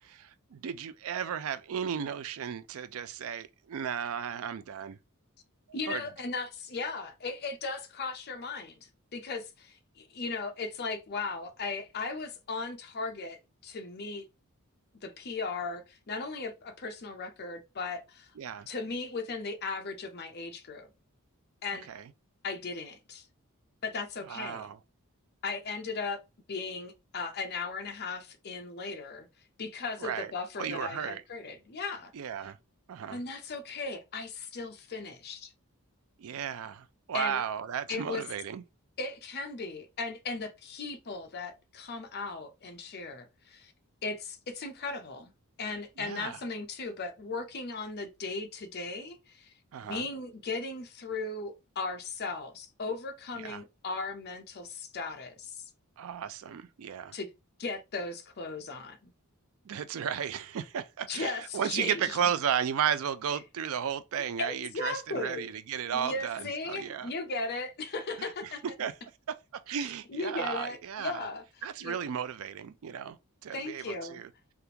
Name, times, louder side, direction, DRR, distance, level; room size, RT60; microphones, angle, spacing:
voice 1, 0.0-5.0 5.9-6.0 18.4-18.7 21.9-22.1 24.3-24.8 30.0-30.3 30.6-31.2 32.1-32.6 32.9-33.2 36.2-38.6 46.0-46.4 49.7-50.0 53.4-53.6 56.0-57.2 59.7-67.1 68.2-68.3 68.8-68.9 69.3-71.3 71.6-73.2 73.4-74.3, right 8 dB, 65° right, 0.4 m, -34 dB
voice 2, 5.7-14.2 15.0-18.3 18.7-20.9 21.6-21.9 22.4-23.3 23.8-24.7 25.4-26.2 26.5-29.3 29.6-32.1 33.1-35.5 37.1-37.4 37.9-38.2 39.0-43.7 44.0-45.3 45.6-49.5 49.9-55.5 57.1-57.3 57.6-59.1 61.1-62.3 64.4-65.5 65.9-68.6 70.1-71.4 71.8-72.0 73.5-74.2, left 3 dB, 45° left, 0.6 m, -37 dB
3.5 x 2.4 x 2.8 m
head